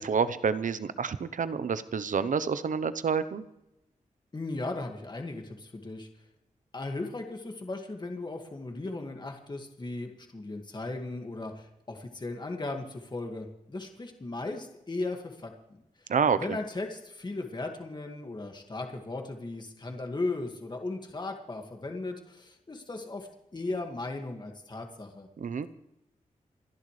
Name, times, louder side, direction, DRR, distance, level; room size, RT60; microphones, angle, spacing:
voice 1, 0.0-3.4 16.1-16.6 25.4-25.7, right 6 dB, 70° right, 13 dB, 0.9 m, -28 dB
voice 2, 4.3-6.1 6.7-25.3, left 2 dB, 30° left, 3 dB, 2.0 m, -37 dB
29.0 x 11.0 x 3.3 m, 0.88 s
wide cardioid pair, 85°, 14 cm